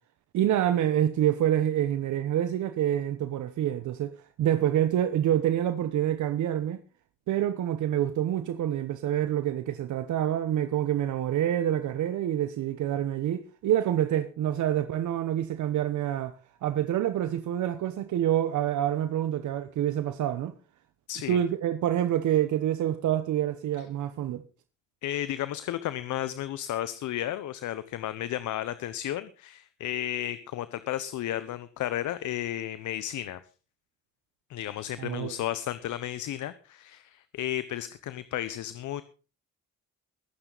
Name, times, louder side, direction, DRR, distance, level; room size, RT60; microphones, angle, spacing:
voice 1, 0.3-6.8 7.3-16.3 16.6-20.5 21.3-24.4 35.0-35.4, right 11 dB, 75° right, 1.0 m, -27 dB
voice 2, 21.1-21.4 25.0-33.4 34.5-39.0, left 12 dB, 75° left, 0.9 m, -33 dB
21.0 x 9.1 x 4.0 m
cardioid pair, 90°, 30 cm